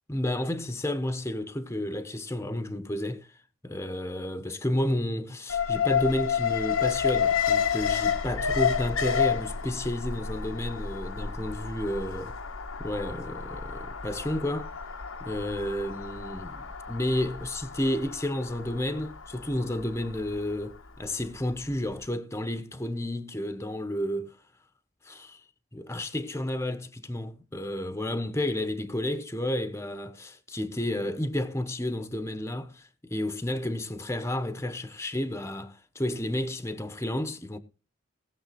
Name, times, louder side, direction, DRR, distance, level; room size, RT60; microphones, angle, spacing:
voice 1, 0.1-3.4 3.6-12.3 12.8-14.7 15.2-24.4 25.0-25.4 25.7-37.6, left 1 dB, 15° left, 1.0 m, -31 dB
Alarm, 5.5-21.6 21.9-22.0, left 7 dB, 85° left, 1.3 m, -30 dB
18.5 x 7.1 x 4.2 m
head